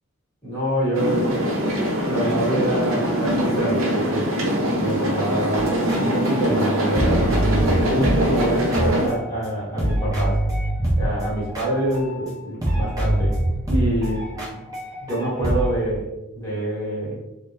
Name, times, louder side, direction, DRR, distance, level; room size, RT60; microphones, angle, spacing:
voice 1, 0.4-1.3 2.0-4.3 4.8-7.3 7.6-10.4 11.0-13.3 13.7-14.2 14.5-14.6 15.0-16.1 16.3-17.2, right 1 dB, 15° left, -6 dB, 1.4 m, -26 dB
sound 1, 0.9-9.1, equal, 70° right, 0.7 m, -23 dB
sound 2, 5.5-9.5 9.7-12.4 12.6-15.7, right 1 dB, 15° right, 0.7 m, -25 dB
3.6 x 2.1 x 2.7 m, 0.93 s
head